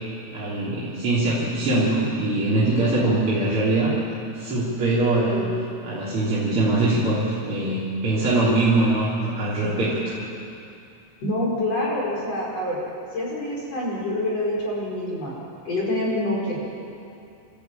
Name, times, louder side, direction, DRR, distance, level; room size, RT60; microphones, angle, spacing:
voice 1, 0.3-4.0 4.4-5.4 5.8-10.1, right 2 dB, 30° right, -9 dB, 3.7 m, -22 dB
voice 2, 11.2-12.8 13.1-15.3 15.6-16.8, left 1 dB, 35° left, -5 dB, 6.1 m, -26 dB
27.5 x 13.5 x 9.1 m, 2.6 s
omnidirectional pair, 5.1 m